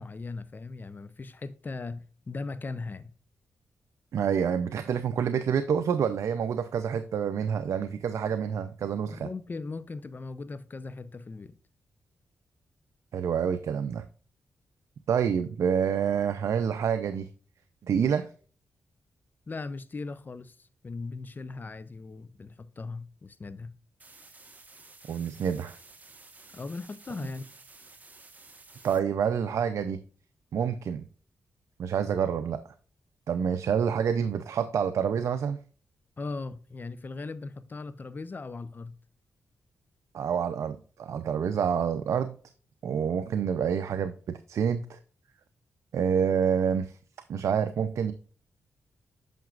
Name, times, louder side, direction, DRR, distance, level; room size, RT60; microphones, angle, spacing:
voice 1, 0.0-3.1 9.1-11.5 19.5-23.7 26.5-27.4 36.2-39.0, left 3 dB, 35° left, 0.7 m, -38 dB
voice 2, 4.1-9.3 13.1-14.0 15.1-17.3 17.8-18.3 25.1-25.8 28.8-30.0 30.5-31.0 31.8-32.6 33.3-35.6 40.1-42.4 42.8-45.0 45.9-47.0 47.3-48.1, right 7 dB, 75° right, 0.5 m, -27 dB
sound 1, 24.0-29.0, right 3 dB, 30° right, 1.3 m, -53 dB
9.1 x 5.9 x 2.4 m
cardioid pair, 75°, 5 cm